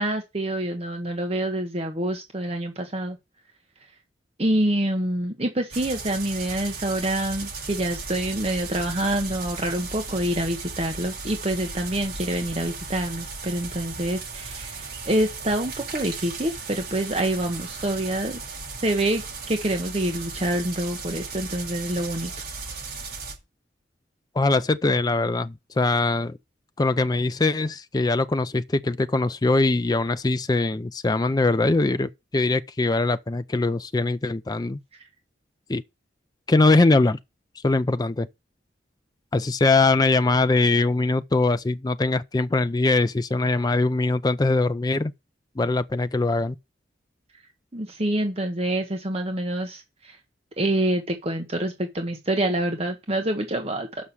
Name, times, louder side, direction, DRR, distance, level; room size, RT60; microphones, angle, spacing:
voice 1, 0.0-3.2 4.4-18.4 18.8-19.2 19.5-22.3 47.7-50.2 50.6-53.9, right 1 dB, 35° right, 1.1 m, -26 dB
sound 1, 5.7-23.4, right 4 dB, 55° right, 4.2 m, -36 dB
voice 2, 24.4-26.4 26.8-34.8 35.7-35.8 36.5-37.2 37.6-38.3 39.3-45.1 45.6-46.6, left 3 dB, 20° left, 0.4 m, -22 dB
6.2 x 5.6 x 7.0 m
head